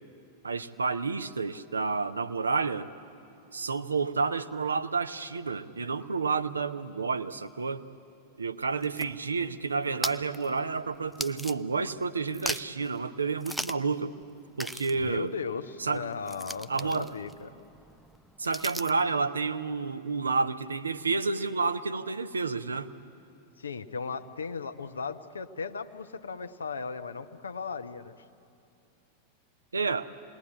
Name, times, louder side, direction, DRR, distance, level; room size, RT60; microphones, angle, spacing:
voice 1, 0.4-2.9 3.5-7.9 8.4-14.1 14.6-15.3 15.8-16.0 16.7-17.1 18.4-22.9 29.7-30.1, right 4 dB, 75° right, 10 dB, 0.9 m, -30 dB
sound 1, 8.6-12.0 12.3-12.9 13.4-13.9 14.2-14.3 14.6-19.1, right 1 dB, ahead, 0.6 m, -39 dB
voice 2, 14.9-17.5 23.6-28.2, left 5 dB, 70° left, 9 dB, 1.0 m, -37 dB
27.5 x 20.0 x 9.9 m, 2.5 s
figure-of-eight pair, 90°, 0 cm